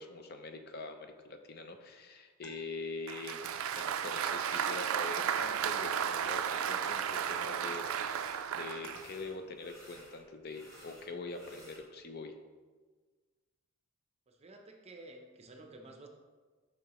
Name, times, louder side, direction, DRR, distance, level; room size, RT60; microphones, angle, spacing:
voice 1, 0.0-3.4 3.8-12.3, left 3 dB, 45° left, 6 dB, 0.5 m, -44 dB
sound 1, 2.4-2.5 3.4-3.6 4.0-4.2 5.2-5.8 6.1-6.3 6.8-7.3 7.7-7.9 8.8-9.0, left 4 dB, 75° left, 0.9 m, -50 dB
Applause, 3.1-9.1, right 8 dB, 70° right, 0.3 m, -34 dB
sound 2, 5.1-5.7 6.1-6.7 7.0-8.5 8.8-11.8, equal, 15° left, 1.2 m, -56 dB
voice 2, 14.3-16.1, right 2 dB, 30° right, 3 dB, 0.6 m, -52 dB
6.5 x 5.7 x 3.0 m, 1.4 s
head